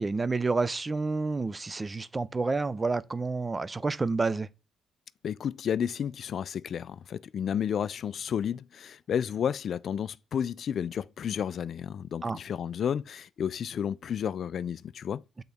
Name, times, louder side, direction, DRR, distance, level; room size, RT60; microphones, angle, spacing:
voice 1, 0.0-4.5 12.2-12.4 15.4-15.5, right 3 dB, 25° right, 0.5 m, -29 dB
voice 2, 5.2-15.4, left 8 dB, 60° left, 0.3 m, -32 dB
8.2 x 3.8 x 3.5 m
cardioid pair, 90°, 0 cm